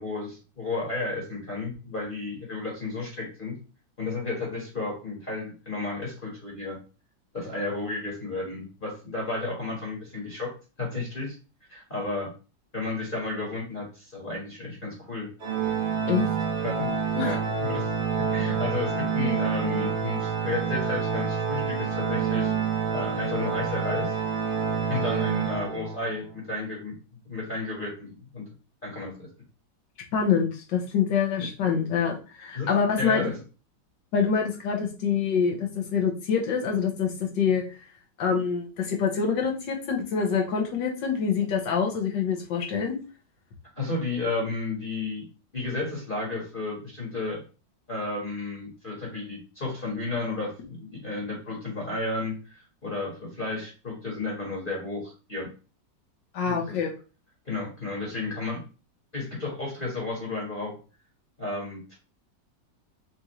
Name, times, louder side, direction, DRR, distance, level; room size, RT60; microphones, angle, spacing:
voice 1, 0.0-3.5 4.0-6.8 7.3-10.5 10.8-11.3 11.7-12.3 12.7-15.3 16.6-16.9 17.2-17.9 18.2-22.5 22.9-24.1 24.9-26.9 27.2-28.4 28.8-29.3 31.4-31.5 32.5-32.7 33.0-33.4 43.7-45.2 45.5-47.4 47.9-55.5 56.5-56.8 57.4-58.6 59.1-60.8 61.4-61.9, left 3 dB, 30° left, -3 dB, 1.5 m, -32 dB
Organ, 15.4-26.2, right 6 dB, 80° right, 0.4 m, -28 dB
voice 2, 30.1-33.3 34.1-37.6 38.2-43.0 56.3-56.9, left 6 dB, 75° left, 1 dB, 1.7 m, -26 dB
6.1 x 2.8 x 3.1 m, 0.34 s
omnidirectional pair, 2.0 m